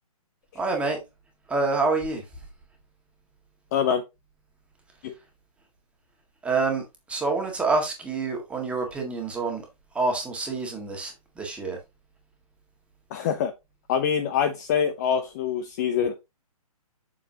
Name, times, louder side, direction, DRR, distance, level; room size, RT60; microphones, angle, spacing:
voice 1, 0.5-1.0 1.5-2.2 6.4-6.8 7.1-9.6 9.9-11.8, right 3 dB, 5° right, 1.7 m, -27 dB
voice 2, 3.7-4.0 5.0-5.1 13.1-13.5 13.9-16.1, left 7 dB, 30° left, 0.6 m, -25 dB
7.3 x 6.6 x 2.8 m
hypercardioid pair, 150°, 19 cm